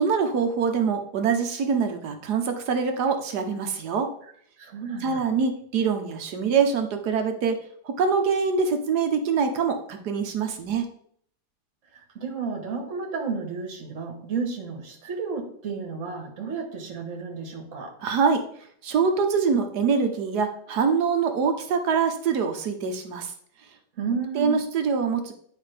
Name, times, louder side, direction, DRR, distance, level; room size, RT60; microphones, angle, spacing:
voice 1, 0.0-4.1 5.0-7.6 7.8-10.9 18.0-18.4 18.8-23.3 24.3-25.3, right 5 dB, 70° right, 6 dB, 1.5 m, -24 dB
voice 2, 4.6-5.4 11.9-17.9 24.0-24.6, right 5 dB, 50° right, 2 dB, 1.8 m, -32 dB
10.0 x 5.3 x 3.4 m, 0.62 s
omnidirectional pair, 1.8 m